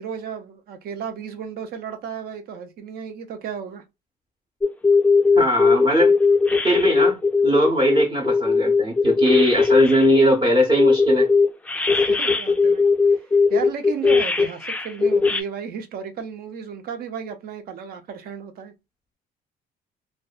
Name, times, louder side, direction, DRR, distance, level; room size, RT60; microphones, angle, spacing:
voice 1, 0.0-3.8 11.9-13.2 13.5-18.7, right 7 dB, 65° right, 0.6 m, -34 dB
sound 1, 4.6-10.2 10.8-15.4, left 4 dB, 10° left, 0.3 m, -18 dB
voice 2, 5.4-6.2 6.6-11.3, right 1 dB, 25° right, 0.7 m, -20 dB
2.5 x 2.2 x 2.3 m
cardioid pair, 110°, 17 cm